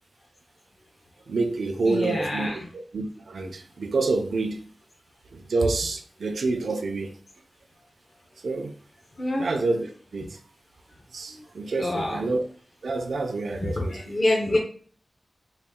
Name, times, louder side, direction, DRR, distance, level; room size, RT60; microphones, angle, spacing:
voice 1, 1.3-4.6 5.3-7.1 8.4-8.8 9.4-10.4 11.1-12.4 12.8-14.1, right 3 dB, 80° right, 0.5 m, -28 dB
voice 2, 1.8-2.6 9.2-9.5 11.8-12.2 13.6-14.6, left 1 dB, 45° left, 0.8 m, -26 dB
3.9 x 2.3 x 3.6 m
wide cardioid pair, 100°, 0 cm